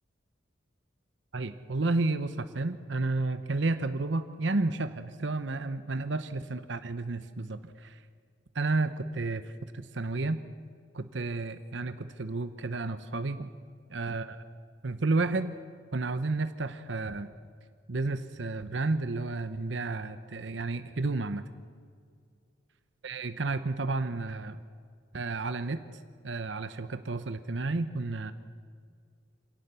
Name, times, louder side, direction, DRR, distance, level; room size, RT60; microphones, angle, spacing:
voice 1, 1.3-8.0 8.5-10.4 10.9-13.5 13.9-14.4 14.8-15.6 15.9-17.3 17.9-21.4 23.0-24.6 25.1-25.8 26.2-28.3, right 3 dB, 70° right, 11 dB, 0.9 m, -31 dB
26.5 x 17.5 x 6.9 m, 2.1 s
head